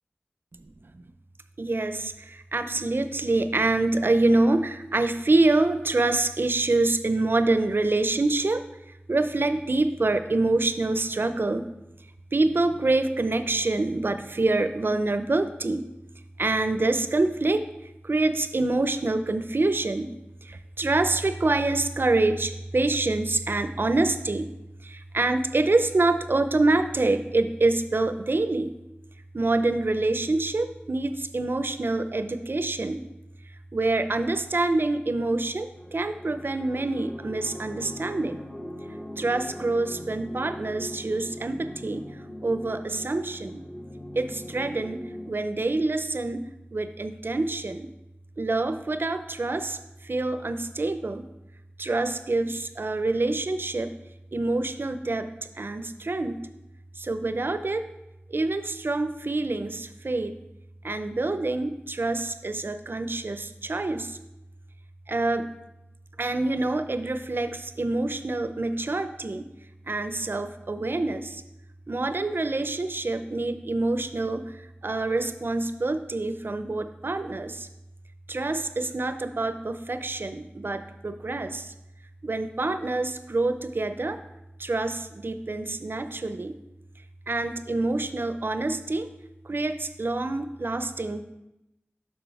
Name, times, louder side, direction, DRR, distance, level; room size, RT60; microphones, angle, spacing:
voice 1, 1.6-8.6 9.1-11.7 12.3-15.9 16.4-17.6 18.0-20.1 20.4-24.5 24.8-28.8 29.3-33.0 33.7-38.4 39.2-42.0 42.4-43.6 44.2-45.0 45.3-46.4 46.7-47.9 48.4-49.8 50.0-51.2 51.8-53.9 54.3-55.3 55.6-56.4 57.0-57.8 58.3-60.3 60.8-64.2 65.1-65.5 66.2-69.4 69.9-71.4 71.9-74.5 74.8-77.7 78.3-81.7 82.2-84.2 84.6-86.5 87.3-89.1 89.5-91.2, right 2 dB, 60° right, 10 dB, 0.5 m, -26 dB
sound 1, 35.7-45.3, left 1 dB, 25° left, 0.9 m, -41 dB
6.2 x 5.9 x 4.6 m, 0.92 s
wide cardioid pair, 60°, 4 cm